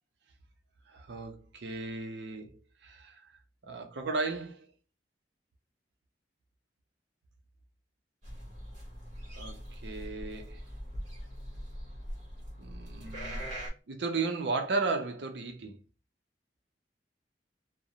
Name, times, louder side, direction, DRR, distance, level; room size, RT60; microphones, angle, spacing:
voice 1, 0.9-2.6 2.8-3.3 3.6-4.7 9.3-10.6 12.6-13.5 13.9-15.8, right 3 dB, 70° right, 0.5 m, -35 dB
sound 1, 8.2-13.7, equal, 45° right, 1.0 m, -42 dB
2.4 x 2.0 x 2.8 m
head